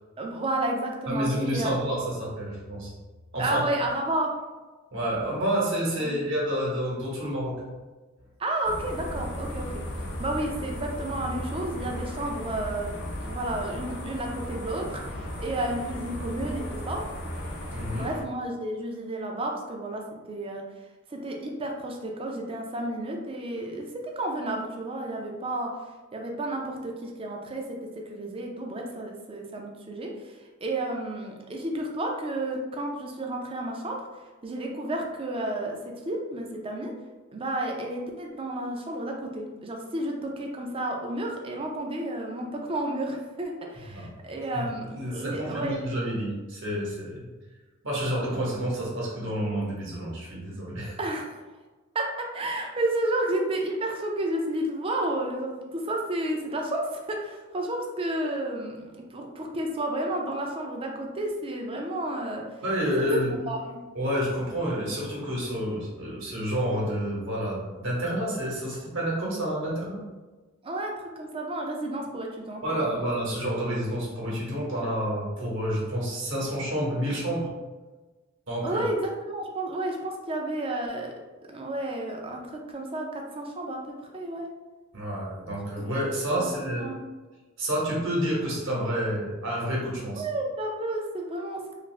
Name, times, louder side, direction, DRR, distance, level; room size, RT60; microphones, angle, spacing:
voice 1, 0.2-1.7 3.4-4.3 6.0-6.3 8.4-9.8 10.2-12.9 13.2-17.0 17.9-20.6 21.1-25.7 26.1-34.1 34.4-36.9 37.3-45.9 51.0-51.4 51.9-62.4 63.1-63.8 70.6-73.1 78.6-81.1 81.5-84.5 86.4-87.0 90.2-91.8, right 1 dB, 25° right, 1 dB, 0.4 m, -31 dB
voice 2, 1.1-2.9 3.3-3.6 4.9-7.6 17.7-18.1 43.9-44.1 44.5-44.7 45.0-47.2 47.8-51.0 62.6-63.3 63.9-70.0 72.6-77.5 78.5-78.8 84.9-86.9 87.6-90.2, equal, 65° right, -4 dB, 1.0 m, -29 dB
sound 1, 8.6-18.2, left 1 dB, 60° left, 0.5 m, -36 dB
2.5 x 2.4 x 3.1 m, 1.2 s
head